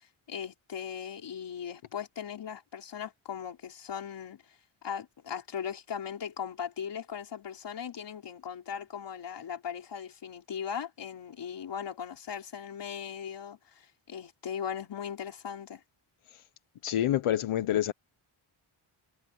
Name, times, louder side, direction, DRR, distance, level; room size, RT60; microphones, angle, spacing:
voice 1, 0.0-4.6 4.8-15.8, left 8 dB, 55° left, 4.4 m, -39 dB
voice 2, 16.8-17.9, left 11 dB, 85° left, 1.1 m, -27 dB
wide cardioid pair, 180°, 49 cm